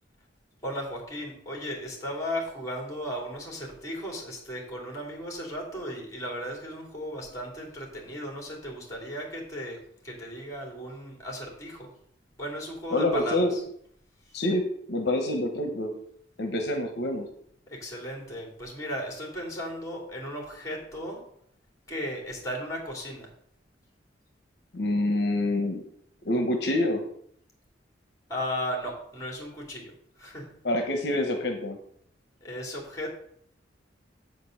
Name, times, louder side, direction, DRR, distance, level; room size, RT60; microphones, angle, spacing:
voice 1, 0.6-9.8 10.0-11.9 12.4-13.6 17.7-21.2 21.9-23.3 28.3-29.9 30.2-30.5 32.4-33.1, equal, 15° left, 0 dB, 2.7 m, -35 dB
voice 2, 12.9-13.5 14.3-14.6 14.9-15.9 16.4-17.2 24.7-25.8 26.2-27.0 30.6-31.8, left 1 dB, 60° left, 5 dB, 0.9 m, -26 dB
8.0 x 5.2 x 6.4 m, 0.69 s
head